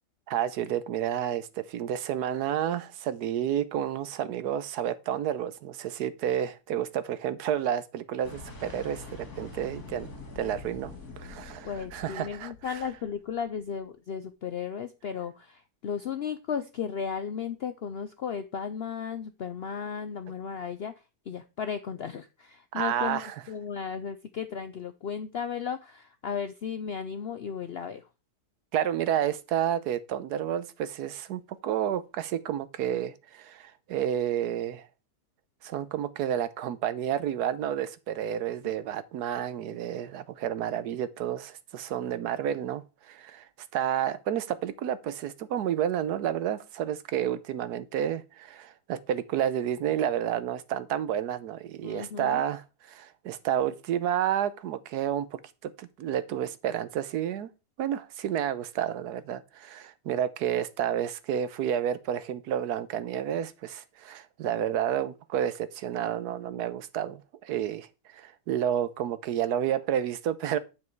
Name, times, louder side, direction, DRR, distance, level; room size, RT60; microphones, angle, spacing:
voice 1, 0.3-10.1 10.4-12.8 22.7-23.4 28.7-34.9 35.6-43.5 43.7-55.3 55.6-57.5 57.8-70.6, right 10 dB, 75° right, 1.3 m, -30 dB
sound 1, 8.2-13.4, left 3 dB, 65° left, 3.1 m, -45 dB
voice 2, 11.6-20.9 21.3-28.0 51.8-52.4, left 7 dB, 85° left, 0.5 m, -35 dB
9.6 x 5.5 x 4.6 m
omnidirectional pair, 1.8 m